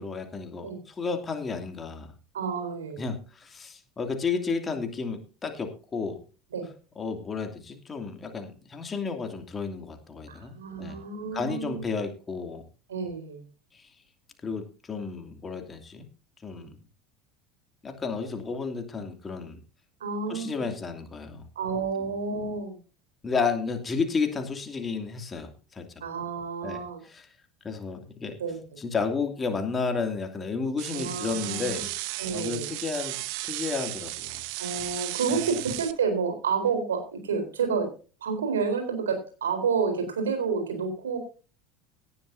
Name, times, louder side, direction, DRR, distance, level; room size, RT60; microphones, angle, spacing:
voice 1, 0.0-2.1 3.0-6.2 7.0-11.0 11.3-12.6 13.7-13.8 14.4-16.1 16.4-16.7 17.8-19.6 20.3-21.4 23.2-25.9 26.6-27.3 27.6-28.4 28.8-31.9 32.3-34.4 35.3-35.4, left 4 dB, 25° left, 5 dB, 2.7 m, -32 dB
voice 2, 2.3-3.0 6.5-6.7 10.3-11.9 12.9-13.4 16.6-16.7 20.0-20.6 21.6-22.8 26.0-27.0 28.4-28.8 30.9-31.8 32.2-32.7 34.6-37.9 38.2-41.2, right 5 dB, 70° right, 6 dB, 4.0 m, -30 dB
sound 1, 30.8-35.9, right 19 dB, 55° right, 0.8 m, -35 dB
17.5 x 11.0 x 2.7 m, 0.35 s
figure-of-eight pair, 75°, 0 cm